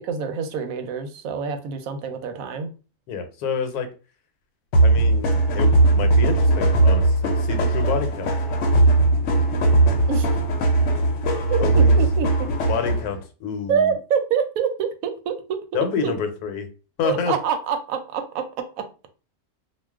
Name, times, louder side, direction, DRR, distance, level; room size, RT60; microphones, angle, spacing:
voice 1, 0.1-2.7 10.1-10.3 11.5-12.5 13.7-15.6 16.0-16.1 17.0-18.4, right 7 dB, 70° right, 7 dB, 0.9 m, -26 dB
voice 2, 3.1-3.9 4.8-8.3 11.6-11.9 12.7-14.0 15.7-16.7 17.0-17.4, left 6 dB, 80° left, 7 dB, 1.1 m, -28 dB
sound 1, 4.7-13.2, right 2 dB, 60° left, 0.9 m, -19 dB
2.4 x 2.3 x 3.4 m, 0.34 s
omnidirectional pair, 1.6 m